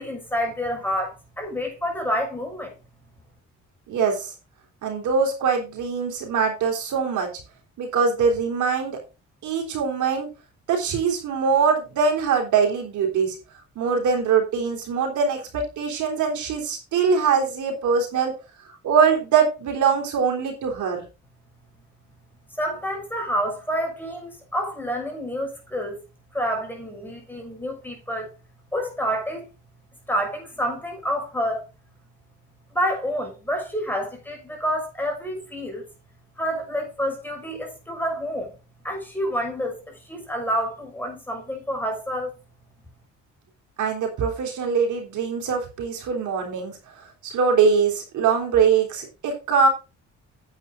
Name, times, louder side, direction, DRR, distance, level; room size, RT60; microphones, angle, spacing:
voice 1, 0.0-2.7 22.6-26.0 26.3-28.3 28.7-29.5 30.1-31.7 32.7-35.9 36.4-38.5 38.8-42.3, equal, 5° left, 6.1 m, -28 dB
voice 2, 3.9-4.3 4.8-7.3 7.8-9.0 9.4-10.3 10.7-13.4 13.8-18.3 18.8-21.0 43.8-46.8 47.2-49.7, right 6 dB, 75° right, 3.6 m, -22 dB
9.9 x 8.5 x 3.9 m
cardioid pair, 90°, 30 cm